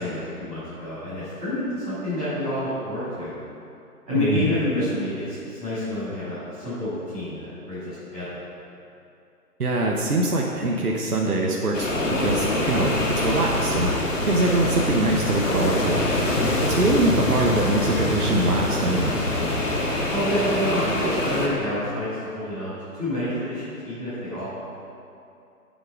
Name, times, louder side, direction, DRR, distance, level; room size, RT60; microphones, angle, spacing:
voice 1, 0.0-3.3 4.1-8.4 16.2-16.5 20.1-24.5, left 1 dB, ahead, -33 dB, 0.8 m, -28 dB
voice 2, 4.1-4.5 9.6-11.9 12.2-13.9 14.2-16.0 16.7-19.2, right 2 dB, 70° right, -1 dB, 1.2 m, -23 dB
sound 1, 11.7-21.5, left 1 dB, 55° left, 1.7 m, -24 dB
8.5 x 7.8 x 4.8 m, 2.6 s
figure-of-eight pair, 155°, 47 cm